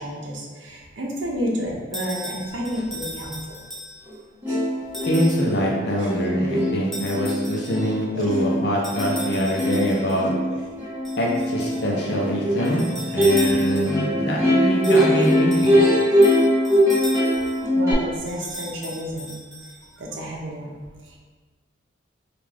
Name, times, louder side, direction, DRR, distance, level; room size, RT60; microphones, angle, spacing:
voice 1, 0.0-3.3 4.5-4.7 6.0-6.3 8.1-8.5 13.1-13.2 13.5-13.6 17.7-19.4 20.0-21.2, equal, 75° right, -1 dB, 0.7 m, -31 dB
sound 1, 1.9-4.2 4.9-5.5 6.9-7.9 8.8-10.2 11.0-11.9 12.6-14.1 14.8-17.6 18.3-20.0, equal, ahead, 0.6 m, -37 dB
Plucked string instrument, 4.1-4.2 4.4-17.9, equal, 15° right, 1.3 m, -22 dB
voice 2, 5.1-10.3 11.2-12.8 13.1-15.8, equal, 60° left, -2 dB, 0.6 m, -24 dB
3.6 x 2.5 x 3.4 m, 1.4 s
head